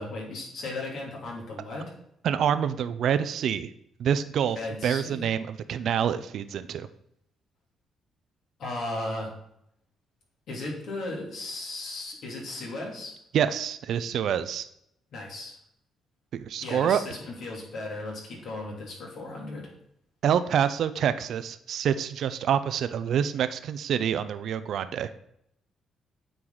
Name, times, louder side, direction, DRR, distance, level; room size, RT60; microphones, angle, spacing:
voice 1, 0.0-1.9 4.5-5.3 8.6-9.3 10.5-13.1 15.1-15.6 16.6-19.7, left 2 dB, 70° left, -2 dB, 2.9 m, -36 dB
voice 2, 2.2-3.7 4.0-4.6 4.8-6.9 13.3-14.7 16.3-17.0 20.2-25.1, right 8 dB, 70° right, 12 dB, 0.4 m, -26 dB
8.9 x 4.7 x 4.0 m, 0.75 s
cardioid pair, 90°, 0 cm